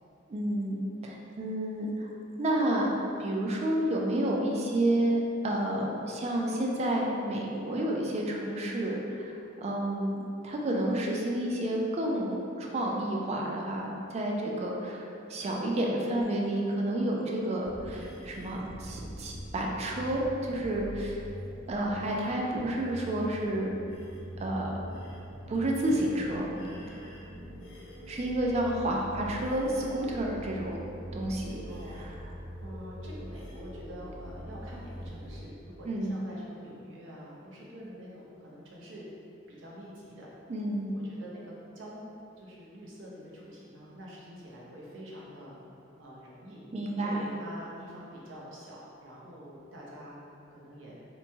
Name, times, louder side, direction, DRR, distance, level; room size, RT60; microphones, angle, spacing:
voice 1, 0.3-2.1 2.4-21.2 21.7-23.7 24.4-24.9 25.5-26.5 28.1-30.8 31.1-31.6 32.0-32.1 35.9-36.1 40.5-40.9 46.7-47.2, right 1 dB, 35° right, -1 dB, 0.3 m, -30 dB
sound 1, 17.6-35.4, equal, 75° left, 0.5 m, -43 dB
voice 2, 31.6-32.3 32.6-39.1 39.5-40.5 40.9-45.7 46.0-46.6 46.9-51.0, equal, 75° right, -5 dB, 0.6 m, -46 dB
2.9 x 2.2 x 2.7 m, 2.6 s
head